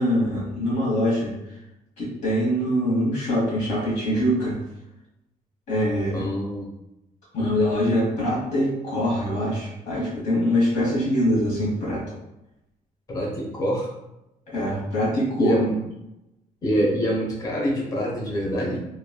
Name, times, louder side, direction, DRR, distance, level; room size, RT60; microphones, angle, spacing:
voice 1, 0.0-1.3 2.0-4.6 5.7-6.3 7.3-12.0 14.5-15.5, equal, 55° left, -7 dB, 1.2 m, -23 dB
voice 2, 6.1-6.7 13.1-13.9 15.4-15.8 16.6-18.8, equal, 25° left, -3 dB, 0.7 m, -25 dB
3.1 x 2.3 x 2.2 m, 0.90 s
cardioid pair, 145°, 15 cm